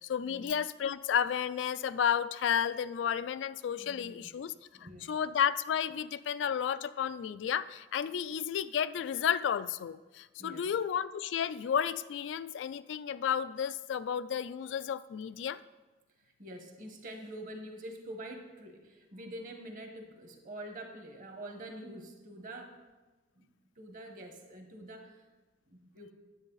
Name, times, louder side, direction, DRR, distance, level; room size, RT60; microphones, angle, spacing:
voice 1, 0.0-4.5 4.8-15.6, left 8 dB, 85° left, 15 dB, 0.3 m, -32 dB
voice 2, 3.8-4.3 4.7-5.2 10.4-10.7 16.4-22.8 23.4-23.5 23.8-25.2 25.7-26.1, right 1 dB, 45° right, 4 dB, 1.2 m, -46 dB
9.7 x 7.7 x 3.9 m, 1.2 s
head